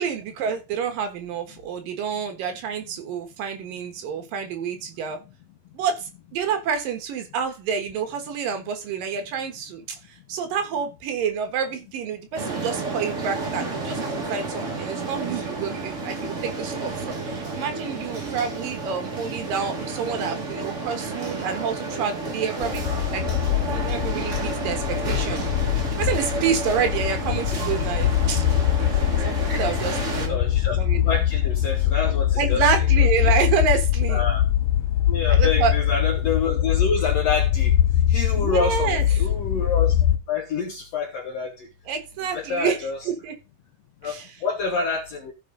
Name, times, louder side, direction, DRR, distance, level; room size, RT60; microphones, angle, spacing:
voice 1, 0.0-5.2 5.7-10.0 10.3-23.3 23.7-25.7 26.0-28.5 29.2-30.4 30.7-31.2 32.4-34.2 35.3-35.7 36.2-36.3 38.1-39.3 41.9-42.8 43.0-43.3 44.0-44.4, right 6 dB, 70° right, 6 dB, 3.0 m, -28 dB
sound 1, 12.3-30.3, right 3 dB, 45° right, 0.9 m, -31 dB
sound 2, 22.6-40.2, left 11 dB, 85° left, 1.6 m, -22 dB
voice 2, 30.3-30.8 31.1-32.6 33.2-33.3 34.1-34.4 35.1-37.7 38.1-39.9 40.3-41.7 42.3-43.0 44.0-44.1 44.4-45.3, left 4 dB, 65° left, 4 dB, 1.6 m, -27 dB
14.5 x 5.6 x 3.8 m, 0.27 s
omnidirectional pair, 4.2 m